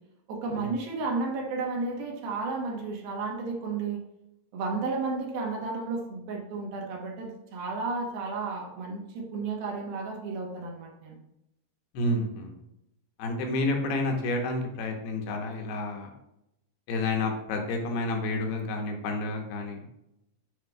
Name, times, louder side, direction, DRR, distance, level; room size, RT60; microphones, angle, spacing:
voice 1, 0.3-4.0 4.5-11.2, right 3 dB, 75° right, 0 dB, 2.8 m, -32 dB
voice 2, 11.9-12.5 13.2-16.1 16.9-19.8, left 2 dB, 80° left, 2 dB, 2.9 m, -30 dB
8.0 x 5.7 x 2.3 m, 0.84 s
omnidirectional pair, 4.6 m